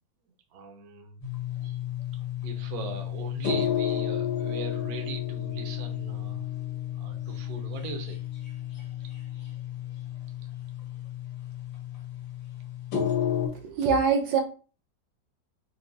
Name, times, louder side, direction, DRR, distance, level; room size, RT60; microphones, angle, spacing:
voice 1, 0.5-1.2 1.6-1.8 2.4-6.5 6.9-8.2 9.3-9.5, right 4 dB, 60° right, 4 dB, 1.1 m, -40 dB
sound 1, 1.2-13.5, left 10 dB, 75° left, 1.9 m, -32 dB
voice 2, 13.4-14.4, right 5 dB, 75° right, 3 dB, 1.4 m, -24 dB
4.6 x 2.0 x 3.8 m, 0.36 s
omnidirectional pair, 2.0 m